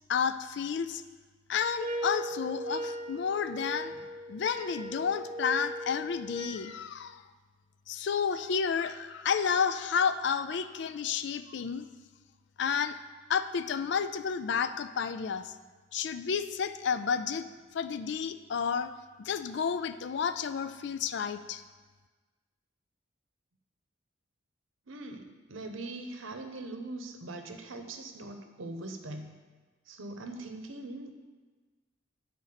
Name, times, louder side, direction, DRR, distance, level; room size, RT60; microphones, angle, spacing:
voice 1, 0.1-1.0 1.5-3.9 4.3-7.2 7.9-11.9 12.6-13.0 13.3-15.5 15.9-17.5 17.7-18.9 19.2-21.6, left 6 dB, 60° left, 11 dB, 0.3 m, -31 dB
sound 1, 1.8-6.7, right 1 dB, 35° right, 0.5 m, -38 dB
voice 2, 24.9-29.3 29.9-31.2, right 2 dB, 85° right, 6 dB, 0.8 m, -41 dB
9.0 x 4.2 x 5.7 m, 1.3 s
head